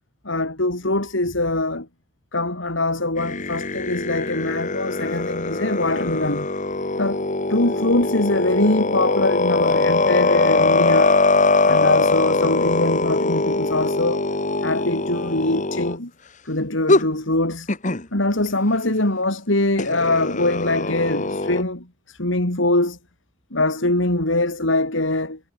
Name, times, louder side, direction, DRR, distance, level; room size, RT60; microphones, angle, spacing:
voice 1, 0.2-1.9 2.3-6.5 7.0-11.2 11.6-14.3 14.6-16.1 16.4-17.7 18.1-23.0 23.5-25.4, left 2 dB, 80° left, 4.5 m, -23 dB
sound 1, 3.2-16.0 16.9-17.1 17.7-18.0 19.8-21.6, left 3 dB, 40° left, 1.9 m, -21 dB
head